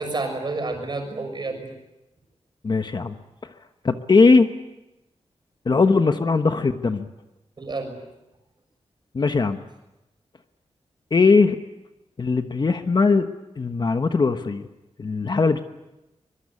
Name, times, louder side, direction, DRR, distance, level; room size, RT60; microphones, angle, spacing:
voice 1, 0.0-1.7 7.6-8.0, right 3 dB, 40° right, 5 dB, 6.3 m, -29 dB
voice 2, 2.6-3.2 3.4-3.5 3.8-4.5 5.6-7.1 9.1-9.6 11.1-11.6 12.2-13.3 13.6-14.7 15.0-15.6, left 4 dB, 40° left, 8 dB, 1.2 m, -19 dB
24.5 x 22.0 x 9.8 m, 0.97 s
wide cardioid pair, 165°, 11 cm